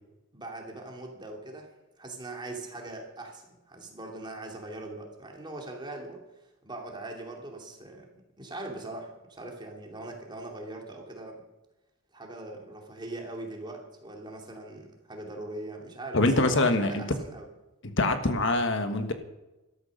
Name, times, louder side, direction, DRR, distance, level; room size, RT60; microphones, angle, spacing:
voice 1, 0.3-1.7 2.0-6.2 6.6-8.1 8.4-11.4 12.1-17.5, right 2 dB, 20° right, 1 dB, 2.7 m, -41 dB
voice 2, 16.1-17.0 17.8-19.1, left 2 dB, 60° left, 8 dB, 1.3 m, -24 dB
13.0 x 13.0 x 6.5 m, 1.0 s
head